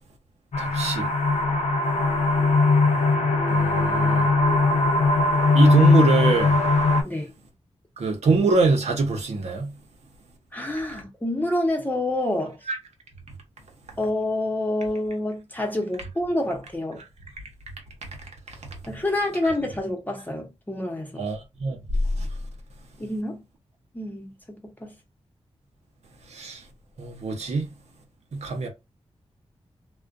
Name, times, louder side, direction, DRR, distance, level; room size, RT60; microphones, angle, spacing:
sound 1, 0.5-7.0, left 3 dB, 85° left, 0.6 m, -20 dB
voice 1, 0.6-1.1 3.5-4.3 5.5-6.6 8.0-9.7 12.7-12.8 21.2-21.8 22.2-22.3 26.3-26.6 27.0-27.7 28.3-28.7, right 4 dB, 80° right, 0.8 m, -23 dB
voice 2, 10.5-12.6 14.0-17.0 18.9-21.3 23.0-23.4 23.9-24.9, left 1 dB, 15° left, 0.8 m, -28 dB
2.4 x 2.1 x 2.5 m
wide cardioid pair, 105°, 11 cm